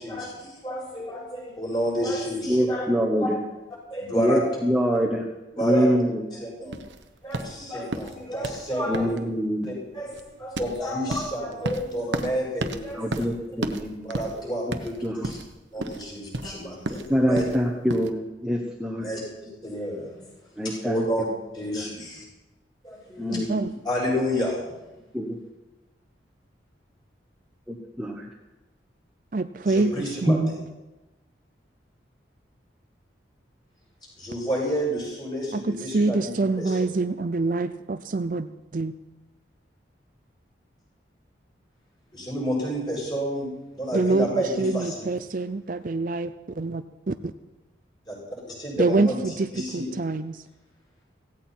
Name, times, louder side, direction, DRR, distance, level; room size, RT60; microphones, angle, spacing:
voice 1, 0.0-2.9 3.2-3.3 3.9-4.4 5.6-5.9 6.3-6.8 7.2-9.1 9.6-13.1 14.0-14.9 15.2-15.4 15.7-17.4 19.0-20.2 20.6-21.2 21.5-22.2 22.8-24.8 29.6-30.5 34.2-36.9 42.1-45.1 48.1-48.2 48.5-49.2 49.5-49.9, equal, 25° left, -5 dB, 7.5 m, -30 dB
voice 2, 2.5-3.4 4.1-5.2 5.5-6.2 8.9-9.7 12.9-14.0 14.7-14.8 15.0-15.3 15.8-15.9 17.1-19.1 20.6-21.3 21.7-21.9 23.2-23.6 25.1-25.4 27.7-28.2 30.3-30.4, equal, 5° right, -2 dB, 1.2 m, -25 dB
sound 1, 6.7-18.1, right 2 dB, 80° right, 1.1 m, -34 dB
voice 3, 23.3-23.7 29.3-29.9 30.2-30.6 35.5-38.9 43.9-47.3 48.8-50.4, right 3 dB, 45° right, 11 dB, 0.5 m, -26 dB
16.5 x 16.5 x 4.5 m, 1.1 s
head